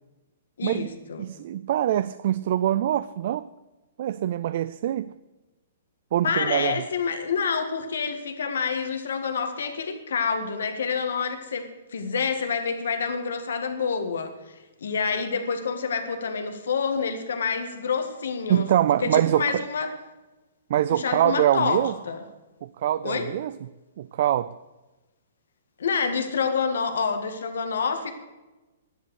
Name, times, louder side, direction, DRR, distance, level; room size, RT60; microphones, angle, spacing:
voice 1, 0.6-1.2 6.2-14.3 14.8-18.7 19.0-19.9 20.9-22.2 23.0-23.3 25.8-28.1, left 5 dB, 80° left, 7 dB, 1.8 m, -27 dB
voice 2, 1.2-3.5 4.0-5.1 6.1-6.8 18.5-19.6 20.7-21.9 22.6-23.5 24.0-24.5, right 11 dB, 40° right, 16 dB, 0.3 m, -24 dB
10.5 x 10.5 x 6.5 m, 1.1 s
hypercardioid pair, 175°, 0 cm